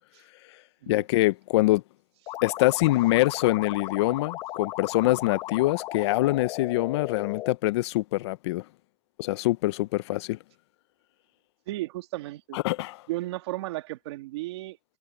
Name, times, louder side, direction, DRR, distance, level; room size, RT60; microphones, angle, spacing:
voice 1, 0.9-1.8 2.4-8.6 9.2-10.4 12.5-13.0, left 18 dB, 80° left, 0.6 m, -24 dB
sound 1, 2.3-7.5, left 15 dB, 35° left, 0.9 m, -36 dB
voice 2, 11.7-12.6 13.1-14.8, right 18 dB, 80° right, 2.4 m, -34 dB
supercardioid pair, 165°, 14 cm